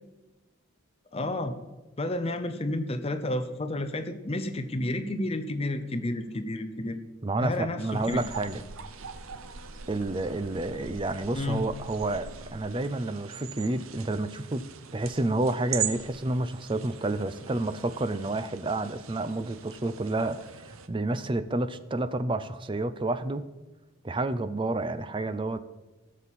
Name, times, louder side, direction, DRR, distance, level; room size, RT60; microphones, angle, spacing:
voice 1, 1.1-1.5 2.0-7.0 7.4-8.3 11.3-11.7, left 1 dB, 30° left, 9 dB, 0.7 m, -31 dB
voice 2, 7.2-8.6 9.9-14.6 14.9-23.5 24.0-25.6, right 2 dB, 25° right, 12 dB, 0.5 m, -30 dB
sound 1, 7.8-20.9, right 7 dB, 75° right, 0.8 m, -41 dB
17.0 x 7.2 x 4.2 m, 1.1 s
head